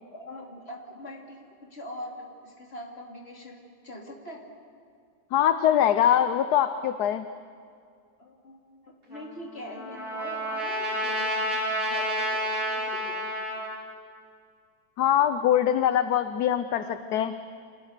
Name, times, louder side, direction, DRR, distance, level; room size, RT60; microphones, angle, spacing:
voice 1, 0.1-4.4 8.2-13.3 16.8-17.3, left 1 dB, 35° left, 0 dB, 3.6 m, -43 dB
voice 2, 5.3-7.2 15.0-17.3, left 10 dB, 65° left, 10 dB, 1.3 m, -23 dB
Trumpet, 9.1-13.8, equal, 55° right, 5.0 m, -30 dB
29.5 x 26.5 x 6.8 m, 2.3 s
omnidirectional pair, 1.9 m